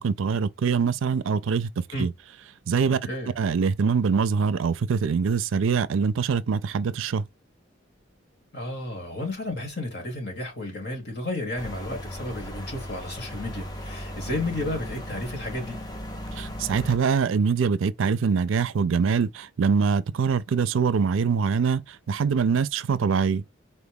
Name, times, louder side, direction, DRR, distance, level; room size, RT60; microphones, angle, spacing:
voice 1, 0.0-2.1 2.7-3.0 3.4-7.2 16.4-23.4, right 5 dB, 85° right, 0.4 m, -24 dB
voice 2, 8.5-15.8, left 2 dB, 55° left, 1.9 m, -32 dB
sound 1, 11.6-17.0, equal, 20° left, 0.7 m, -37 dB
4.2 x 2.3 x 3.4 m
head